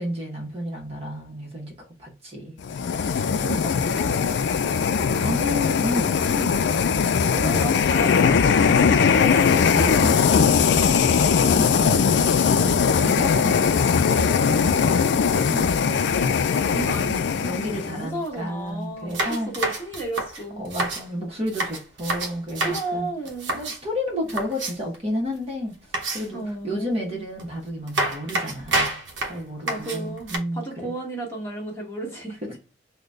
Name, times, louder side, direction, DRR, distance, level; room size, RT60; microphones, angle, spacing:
voice 1, 0.0-1.7 2.0-2.5 3.4-3.7 5.1-6.7 8.8-12.0 12.6-16.4 17.4-19.5 20.6-23.1 23.5-25.7 26.1-30.9 32.4-32.6, left 1 dB, 30° right, 0.9 m, -32 dB
sound 1, 2.6-18.0, left 6 dB, 60° left, 0.3 m, -20 dB
voice 2, 3.1-4.1 7.3-8.7 11.9-12.8 16.6-20.6 22.6-23.6 26.3-27.2 29.6-32.6, right 2 dB, 15° left, 1.2 m, -34 dB
sound 2, 18.2-18.3 18.6-18.7 19.1-21.1 21.5-22.9 23.3-23.8 24.3-25.0 25.9-26.5 27.4-27.5 27.9-30.4, right 2 dB, 70° right, 0.8 m, -28 dB
3.9 x 2.2 x 3.2 m
head